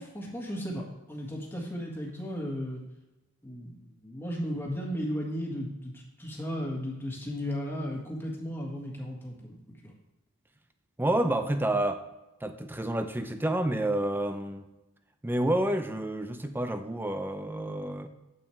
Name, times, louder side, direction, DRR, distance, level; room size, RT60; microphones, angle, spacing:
voice 1, 0.0-2.8 3.4-9.9, equal, 10° left, -2 dB, 1.7 m, -35 dB
voice 2, 11.0-12.0 12.4-14.6 15.2-18.1, right 1 dB, 10° right, 8 dB, 0.5 m, -29 dB
9.0 x 8.5 x 3.3 m, 1.0 s
head